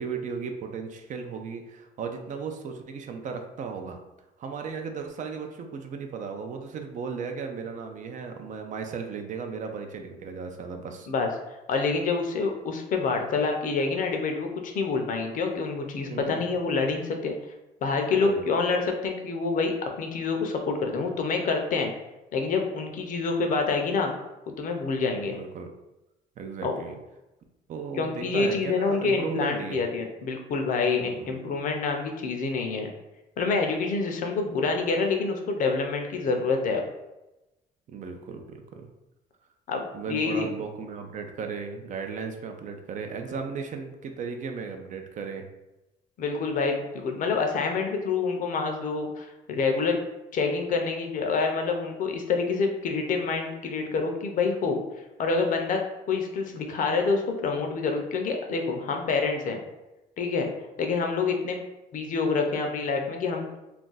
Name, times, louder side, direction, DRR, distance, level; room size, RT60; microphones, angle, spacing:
voice 1, 0.0-4.0 4.4-11.1 16.0-16.5 18.1-18.5 25.3-25.7 26.4-26.9 27.7-29.9 31.0-31.4 37.9-38.9 39.9-45.5, right 5 dB, 50° right, 5 dB, 0.4 m, -36 dB
voice 2, 11.7-17.3 17.8-21.9 22.3-24.1 24.6-25.4 26.6-26.8 28.0-32.9 33.4-36.9 39.7-40.5 46.2-50.0 50.3-54.8 55.2-55.8 56.1-59.6 60.2-60.5 60.8-61.6 61.9-63.5, left 4 dB, 50° left, 3 dB, 0.5 m, -27 dB
2.4 x 2.2 x 3.9 m, 0.99 s
cardioid pair, 110°, 17 cm